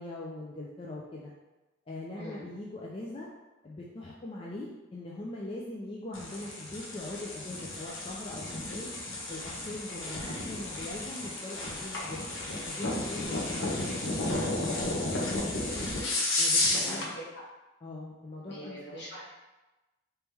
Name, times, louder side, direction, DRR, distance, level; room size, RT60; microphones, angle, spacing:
voice 1, 0.0-1.3 1.9-3.3 3.6-8.9 9.3-12.2 12.7-13.8 14.3-14.9 15.2-15.9 16.4-17.1 17.8-19.0, left 2 dB, 30° left, -5 dB, 0.4 m, -41 dB
voice 2, 2.1-2.5 9.9-10.4 13.2-13.7 16.7-17.4 18.5-19.3, equal, 60° left, -7 dB, 1.4 m, -44 dB
sound 1, 6.1-17.1, left 2 dB, 85° left, 0.8 m, -32 dB
3.3 x 3.0 x 3.3 m, 1.1 s
head